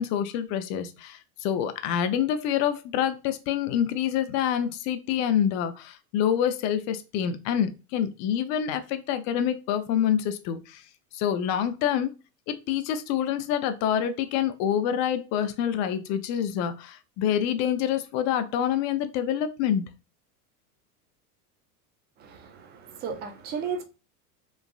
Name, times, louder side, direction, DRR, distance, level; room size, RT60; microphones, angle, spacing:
voice 1, 0.0-10.8 11.1-12.1 12.5-19.9, left 9 dB, 40° left, 0.4 m, -27 dB
voice 2, 22.2-23.8, right 6 dB, 20° right, 0.4 m, -34 dB
3.0 x 2.4 x 2.3 m
hypercardioid pair, 95°, 47 cm